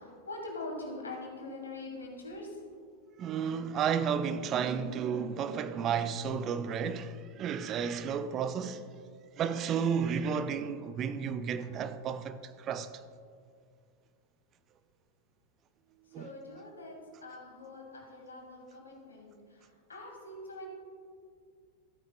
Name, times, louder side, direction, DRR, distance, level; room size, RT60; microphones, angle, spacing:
voice 1, 0.0-2.6 16.2-17.0 17.2-20.7, left 2 dB, 75° left, 2.0 m, -43 dB
voice 2, 3.2-8.8 9.4-12.9 16.1-16.3, right 7 dB, 30° right, 0.4 m, -32 dB
14.0 x 9.3 x 2.3 m
figure-of-eight pair, 90°, 0 cm